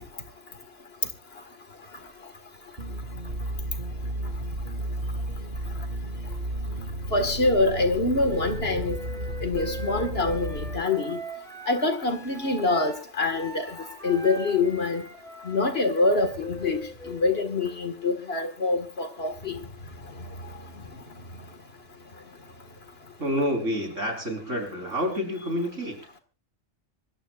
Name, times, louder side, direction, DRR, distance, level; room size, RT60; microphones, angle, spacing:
sound 1, 2.8-10.8, right 1 dB, 50° right, 3.6 m, -33 dB
voice 1, 7.1-9.0 9.4-11.2 11.7-15.0 15.4-19.6, left 3 dB, 55° left, 8 dB, 2.1 m, -25 dB
Wind instrument woodwind instrument, 8.2-18.0, right 1 dB, 5° left, 6.6 m, -41 dB
voice 2, 23.2-26.0, equal, 80° right, 3 dB, 4.7 m, -28 dB
25.5 x 14.5 x 2.5 m, 0.30 s
omnidirectional pair, 1.3 m